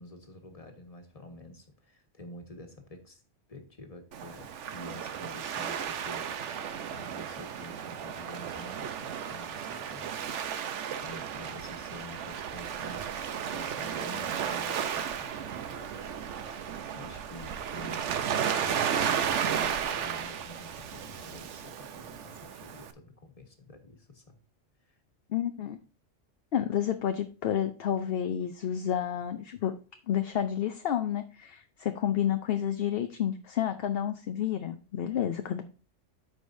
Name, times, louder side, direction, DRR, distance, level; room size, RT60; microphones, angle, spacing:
voice 1, 0.0-3.2 3.5-10.2 10.9-13.1 13.4-16.3 16.9-24.4 24.8-25.0, left 2 dB, 30° left, 4 dB, 1.5 m, -48 dB
Waves surf, 4.1-22.9, right 8 dB, 70° right, 1.1 m, -34 dB
voice 2, 25.3-25.8 26.5-29.8 30.1-35.6, left 10 dB, 60° left, 8 dB, 0.8 m, -30 dB
13.5 x 4.9 x 2.6 m, 0.37 s
omnidirectional pair, 1.3 m